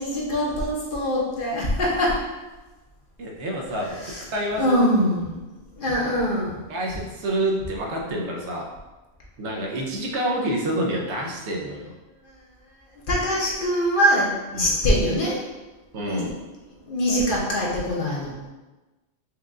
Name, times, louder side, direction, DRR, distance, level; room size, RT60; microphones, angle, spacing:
voice 1, 0.0-2.2 3.7-6.6 8.1-8.2 12.2-12.3 12.9-15.4 16.0-16.4 16.8-18.3, equal, 50° left, -4 dB, 1.0 m, -24 dB
voice 2, 3.2-3.9 4.3-4.6 6.7-8.7 9.4-11.9 14.5-14.7 15.9-16.3, right 1 dB, 85° right, 0 dB, 1.0 m, -27 dB
4.6 x 2.4 x 3.6 m, 1.1 s
omnidirectional pair, 1.1 m